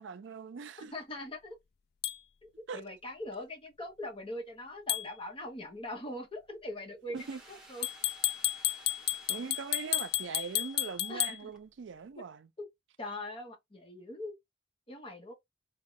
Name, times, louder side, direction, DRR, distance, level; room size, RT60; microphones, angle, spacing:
voice 1, 0.0-0.9 2.7-2.8 7.1-7.4 9.3-12.5, right 5 dB, 70° right, 0.4 m, -41 dB
voice 2, 0.9-1.6 2.4-7.9 11.1-11.5 12.6-12.7 13.0-14.3 14.9-15.3, left 1 dB, 30° left, 0.9 m, -42 dB
sound 1, 2.0-2.2 4.9-5.1 7.8-11.4, left 14 dB, 55° left, 0.3 m, -32 dB
sound 2, 7.1-11.2 11.5-11.6, right 2 dB, 5° right, 1.5 m, -55 dB
3.7 x 2.2 x 3.7 m
head